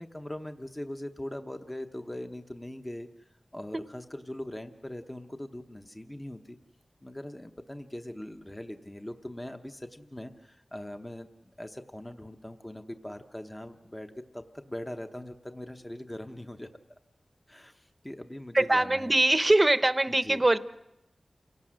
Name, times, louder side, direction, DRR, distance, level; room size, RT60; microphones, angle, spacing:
voice 1, 0.0-6.6 7.0-11.3 11.6-17.0 17.5-19.1 20.1-20.4, left 1 dB, 15° left, 6 dB, 0.9 m, -41 dB
voice 2, 18.5-20.6, right 2 dB, 25° right, 12 dB, 0.8 m, -22 dB
28.5 x 17.5 x 6.3 m, 0.90 s
wide cardioid pair, 80°, 0 cm